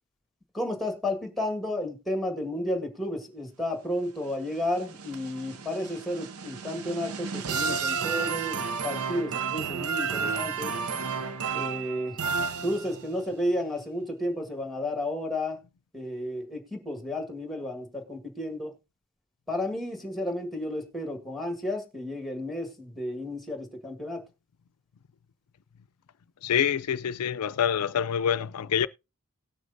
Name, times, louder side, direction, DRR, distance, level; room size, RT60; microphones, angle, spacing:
voice 1, 0.5-10.8 11.5-12.2 12.6-15.6 15.9-18.7 19.5-24.2, left 1 dB, ahead, 1.6 m, -32 dB
sound 1, 4.3-13.2, right 5 dB, 75° right, 0.7 m, -32 dB
voice 2, 26.4-28.9, left 8 dB, 85° left, 0.4 m, -26 dB
18.5 x 6.3 x 2.6 m
head